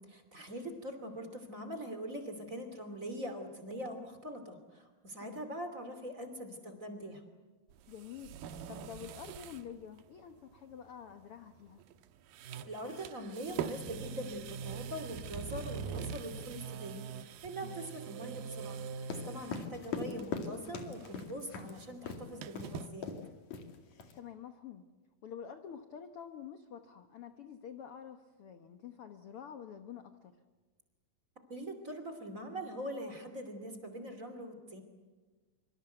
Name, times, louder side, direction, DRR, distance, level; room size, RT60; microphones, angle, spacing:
voice 1, 0.0-7.2 12.6-18.8 19.1-23.1 31.5-34.8, equal, 25° right, 7 dB, 2.7 m, -43 dB
sound 1, 7.7-9.7 10.0-10.1 11.8-12.0 12.3-19.7 20.1-20.5 20.8-22.9, right 7 dB, 80° right, 2.8 m, -43 dB
voice 2, 7.9-8.3 8.7-11.8 17.6-17.8 24.1-24.9 25.2-30.4, left 8 dB, 70° left, 8 dB, 1.3 m, -48 dB
sound 2, 19.0-21.7 22.1-22.2 22.6-22.7 23.0-23.3 23.5-24.1, left 5 dB, 55° left, 3.4 m, -40 dB
25.0 x 25.0 x 8.0 m, 1.3 s
omnidirectional pair, 4.3 m